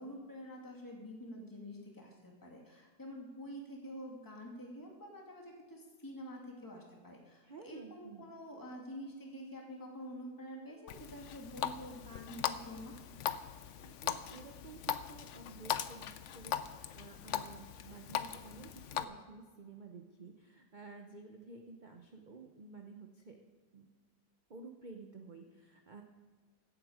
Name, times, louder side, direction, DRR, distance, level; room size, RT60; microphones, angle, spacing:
voice 1, 0.0-13.0, equal, 10° left, -1 dB, 2.1 m, -48 dB
voice 2, 7.4-8.3 13.8-23.4 23.7-23.9 24.5-26.0, right 4 dB, 40° right, 3 dB, 0.7 m, -52 dB
Water tap faucet, 10.9-19.0, left 10 dB, 70° left, 0.7 m, -40 dB
16.0 x 8.1 x 5.0 m, 1.5 s
omnidirectional pair, 1.9 m